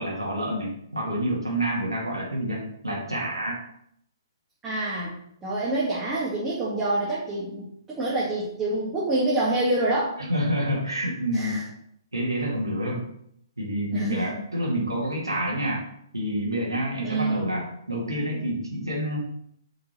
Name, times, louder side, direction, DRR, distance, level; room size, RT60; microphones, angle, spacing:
voice 1, 0.0-3.6 10.3-11.6 12.1-13.1 13.6-15.8 16.1-19.2, right 1 dB, 80° right, -3 dB, 2.6 m, -28 dB
voice 2, 4.6-5.1 5.4-10.2 11.3-11.6 13.9-14.5 17.0-17.5, right 2 dB, 15° right, -8 dB, 2.1 m, -27 dB
7.2 x 5.7 x 4.5 m, 0.71 s
figure-of-eight pair, 125°, 2 cm